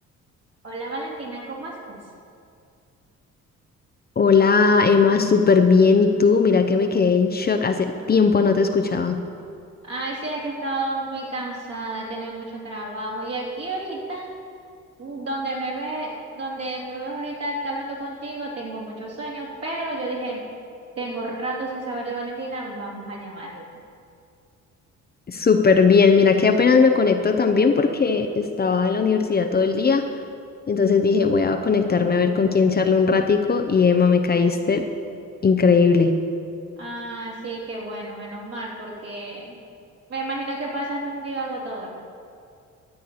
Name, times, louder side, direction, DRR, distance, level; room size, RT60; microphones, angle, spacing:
voice 1, 0.6-2.0 9.8-14.3 15.0-20.4 20.9-23.7 36.8-39.6 40.1-41.9, right 2 dB, 55° right, -4 dB, 3.3 m, -31 dB
voice 2, 4.2-9.2 25.3-30.1 30.7-34.9 35.4-36.2, left 5 dB, 30° left, 5 dB, 0.7 m, -18 dB
13.5 x 4.7 x 8.6 m, 2.4 s
cardioid pair, 90°, 30 cm